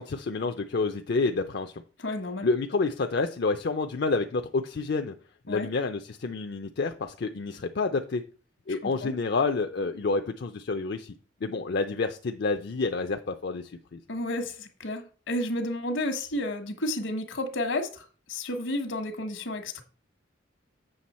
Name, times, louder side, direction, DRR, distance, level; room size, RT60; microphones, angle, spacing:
voice 1, 0.0-1.8 2.4-5.1 5.5-8.2 8.7-11.1 11.4-14.0, left 3 dB, 60° left, 0.5 m, -29 dB
voice 2, 2.0-2.5 5.5-5.7 8.8-9.1 14.1-19.8, left 1 dB, 75° left, 1.2 m, -31 dB
7.8 x 6.0 x 4.2 m
head